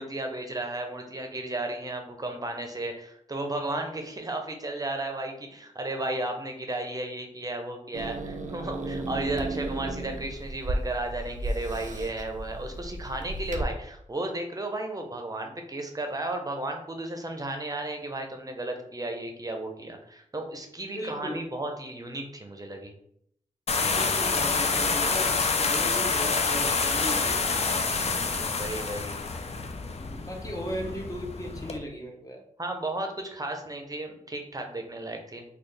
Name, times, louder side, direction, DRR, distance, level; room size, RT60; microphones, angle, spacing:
voice 1, 0.0-22.9 28.0-29.2 32.6-35.4, right 2 dB, 25° right, 3 dB, 0.6 m, -34 dB
Growling / Hiss, 7.9-13.6, right 2 dB, 65° right, 0.4 m, -34 dB
voice 2, 20.8-21.5 23.8-27.6 30.0-32.4, equal, 25° left, 1 dB, 0.7 m, -37 dB
sound 1, 23.7-31.8, left 4 dB, 50° left, 0.4 m, -27 dB
3.9 x 2.3 x 3.3 m, 0.71 s
wide cardioid pair, 95°, 14 cm